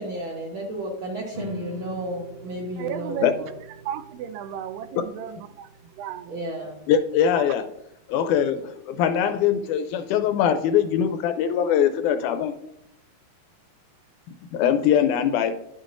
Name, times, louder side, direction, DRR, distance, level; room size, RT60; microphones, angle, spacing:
voice 1, 0.0-3.5 6.3-6.8, right 1 dB, 60° right, -2 dB, 1.3 m, -33 dB
sound 1, 1.3-7.6, equal, 25° right, 0.7 m, -43 dB
voice 2, 2.8-3.3 3.9-6.3 7.3-7.5 8.9-9.0, right 10 dB, 85° right, 11 dB, 2.2 m, -34 dB
voice 3, 6.9-7.7 8.1-12.6 14.5-15.5, left 9 dB, 80° left, 8 dB, 1.8 m, -22 dB
11.0 x 6.4 x 2.5 m, 0.82 s
omnidirectional pair, 3.9 m